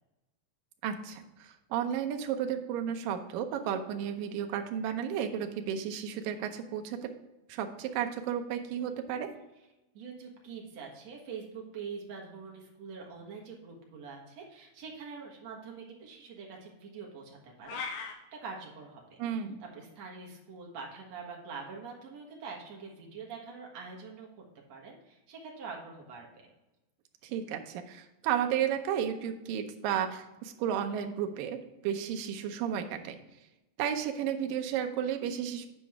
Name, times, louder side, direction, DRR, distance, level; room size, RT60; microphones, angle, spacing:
voice 1, 0.8-7.1 7.5-9.3 19.2-19.6 27.2-31.6 31.8-33.2 33.8-35.7, right 9 dB, 75° right, 6 dB, 2.3 m, -33 dB
voice 2, 9.9-19.2 19.6-24.3 24.7-26.5, right 5 dB, 55° right, -1 dB, 2.5 m, -45 dB
sound 1, 17.6-18.1, left 5 dB, 90° left, 3.0 m, -37 dB
9.8 x 5.1 x 3.6 m, 0.99 s
omnidirectional pair, 4.2 m